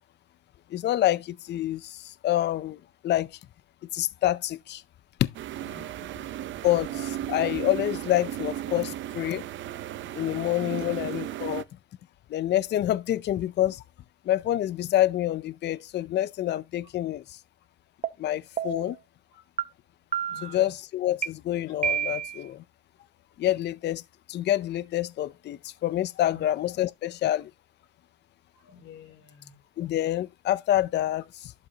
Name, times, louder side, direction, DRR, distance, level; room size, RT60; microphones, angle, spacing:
voice 1, 0.7-3.3 3.9-4.8 5.2-5.3 6.6-9.4 10.1-11.6 12.3-13.8 14.3-17.4 18.2-19.0 20.4-22.6 23.4-24.0 24.3-27.5 29.8-31.5, left 13 dB, 60° left, 0.5 m, -27 dB
sound 1, 5.3-11.6, right 12 dB, 70° right, 0.7 m, -35 dB
voice 2, 5.6-6.3 10.7-10.9 19.3-19.4 20.3-20.6 26.3-26.4 28.5-29.6, left 7 dB, 90° left, 3.4 m, -50 dB
sound 2, 18.0-18.1 18.6-19.0 19.6-19.7 20.1-20.6 21.2-21.3 21.8-22.4, right 8 dB, 35° right, 0.8 m, -29 dB
11.5 x 5.0 x 2.8 m
cardioid pair, 90°, 20 cm